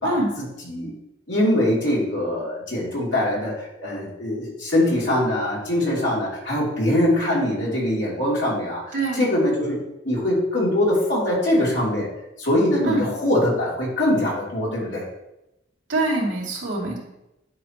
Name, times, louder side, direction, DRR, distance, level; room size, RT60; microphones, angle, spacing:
voice 1, 1.3-12.1 12.4-15.0, left 1 dB, 75° left, -5 dB, 3.1 m, -22 dB
voice 2, 8.9-9.3 12.8-13.1 15.9-17.0, right 2 dB, 80° right, -2 dB, 2.7 m, -24 dB
10.5 x 5.9 x 3.1 m, 0.89 s
head